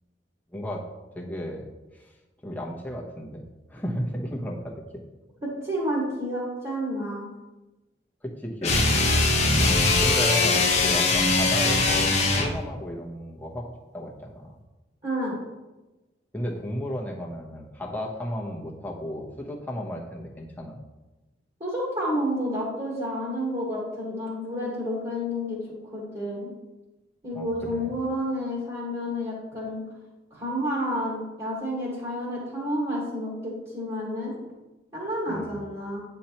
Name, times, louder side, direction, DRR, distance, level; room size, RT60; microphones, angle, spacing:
voice 1, 0.5-0.8 1.1-1.7 1.9-2.1 2.4-4.8 8.2-9.3 10.0-14.5 16.3-20.8 27.3-28.0 35.3-35.6, equal, 10° left, -1 dB, 0.8 m, -34 dB
voice 2, 5.4-7.3 15.0-15.4 21.6-25.6 25.9-26.5 27.2-29.8 30.3-34.3 34.9-36.0, equal, 35° right, -6 dB, 1.6 m, -30 dB
sound 1, 8.6-12.6, left 3 dB, 35° left, 0.9 m, -21 dB
9.0 x 4.4 x 2.9 m, 1.1 s
head